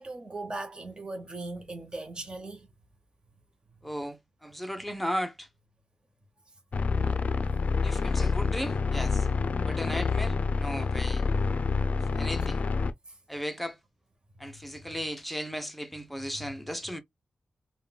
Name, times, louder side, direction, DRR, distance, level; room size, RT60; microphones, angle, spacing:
voice 1, 0.0-2.7 14.5-14.6 16.4-16.5, right 2 dB, 30° right, 0.7 m, -39 dB
voice 2, 3.8-5.5 7.8-9.3 9.7-11.3 12.0-12.6 13.3-13.8 14.4-17.0, equal, 5° left, 0.6 m, -36 dB
sound 1, 6.7-12.9, left 4 dB, 55° left, 0.4 m, -27 dB
3.6 x 2.2 x 2.2 m
wide cardioid pair, 105°, 3 cm